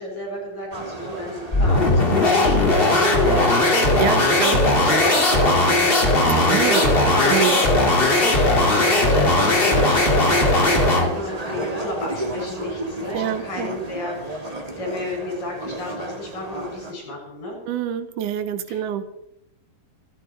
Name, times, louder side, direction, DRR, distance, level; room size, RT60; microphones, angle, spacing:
voice 1, 0.0-6.1 6.4-17.6 18.7-19.1, left 1 dB, 70° left, -1 dB, 8.9 m, -32 dB
sound 1, 0.7-16.9, right 1 dB, 20° right, 0.9 m, -33 dB
sound 2, 1.5-11.2, left 2 dB, 25° left, 1.4 m, -18 dB
voice 2, 4.0-4.6 6.4-6.9 7.3-7.6 13.1-13.7 17.7-19.0, right 11 dB, 70° right, 11 dB, 2.4 m, -26 dB
26.0 x 9.4 x 4.6 m, 0.83 s
omnidirectional pair, 4.1 m